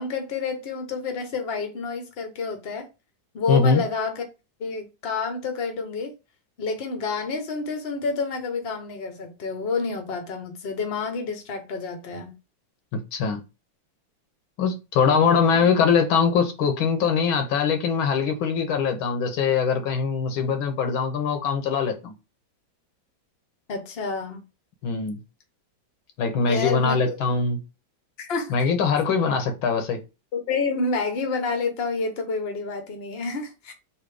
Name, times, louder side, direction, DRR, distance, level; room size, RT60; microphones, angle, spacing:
voice 1, 0.0-2.9 3.3-4.2 4.6-6.1 6.6-12.3 15.5-15.7 23.7-24.4 26.4-27.2 28.2-28.5 30.3-33.7, left 4 dB, 45° left, 0.8 m, -29 dB
voice 2, 3.5-3.8 12.9-13.4 14.6-22.1 24.8-25.2 26.2-27.6 28.5-30.0, left 5 dB, 85° left, 1.7 m, -22 dB
4.0 x 2.7 x 4.7 m
omnidirectional pair, 2.1 m